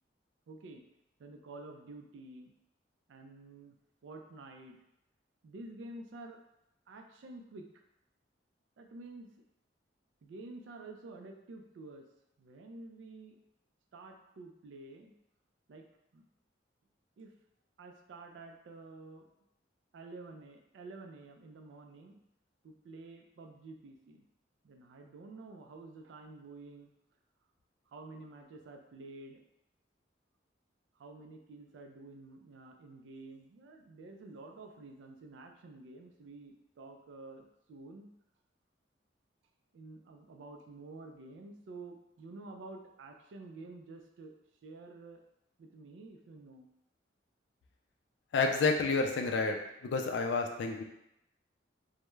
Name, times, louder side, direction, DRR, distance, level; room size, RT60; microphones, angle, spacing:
voice 1, 0.5-0.8 1.2-2.5 3.1-3.8 4.0-4.8 5.4-6.4 6.9-7.7 8.8-9.4 10.2-12.1 12.4-13.4 13.9-15.1 15.7-15.9 16.1-16.3 17.2-17.3 17.8-19.3 19.9-22.2 22.6-24.3 24.6-26.9 27.9-29.4 30.9-38.1 39.7-44.3 44.6-45.2 45.6-46.7, right 2 dB, 75° right, 3 dB, 0.3 m, -50 dB
voice 2, 48.3-50.8, left 4 dB, 65° left, 3 dB, 0.3 m, -30 dB
2.2 x 2.0 x 3.0 m, 0.82 s
head